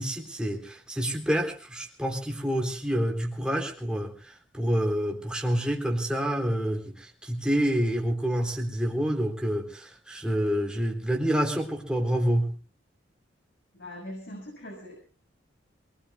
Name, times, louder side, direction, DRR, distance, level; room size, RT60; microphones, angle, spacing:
voice 1, 0.0-12.5, equal, 5° right, 1 dB, 3.7 m, -28 dB
voice 2, 13.7-14.9, left 1 dB, 65° left, 0 dB, 6.8 m, -41 dB
27.0 x 21.0 x 2.3 m, 0.34 s
head